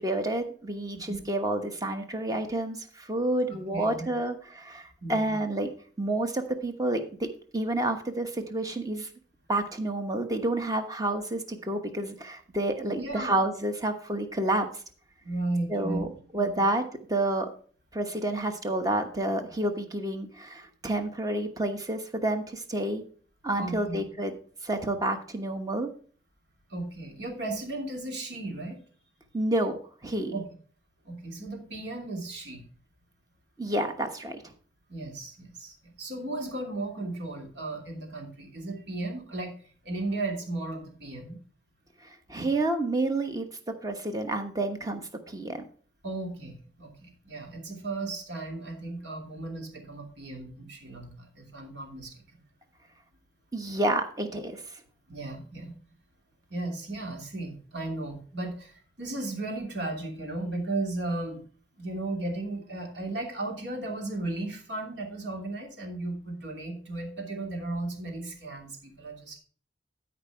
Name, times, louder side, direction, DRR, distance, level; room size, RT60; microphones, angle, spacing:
voice 1, 0.0-5.7 6.0-9.1 9.5-14.7 15.7-16.1 16.3-16.8 17.1-17.5 17.9-23.0 23.4-24.3 24.6-25.9 29.3-30.3 33.6-34.5 42.0-43.5 43.8-45.6 53.5-54.8, right 1 dB, 20° right, 6 dB, 1.1 m, -29 dB
voice 2, 3.7-4.1 5.0-5.4 12.9-13.4 15.2-16.6 23.6-24.0 26.7-28.8 30.3-30.4 31.0-32.6 34.9-39.5 39.8-41.4 46.0-52.4 55.1-55.7 56.5-61.4 61.8-69.4, right 2 dB, 75° right, 1 dB, 2.9 m, -35 dB
13.0 x 5.2 x 4.6 m, 0.43 s
head